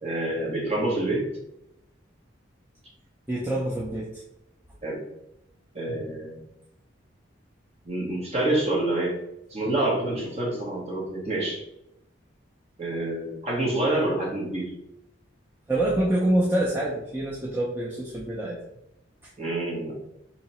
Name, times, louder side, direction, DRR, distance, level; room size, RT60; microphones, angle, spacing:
voice 1, 0.0-1.3 4.8-5.0 5.7-6.4 7.8-9.2 9.5-11.6 12.8-14.7 19.4-19.9, right 1 dB, 35° right, -3 dB, 1.0 m, -27 dB
voice 2, 3.3-4.2 15.7-18.6 19.2-19.3, right 1 dB, 10° right, -5 dB, 0.4 m, -26 dB
2.9 x 2.8 x 4.1 m, 0.83 s
head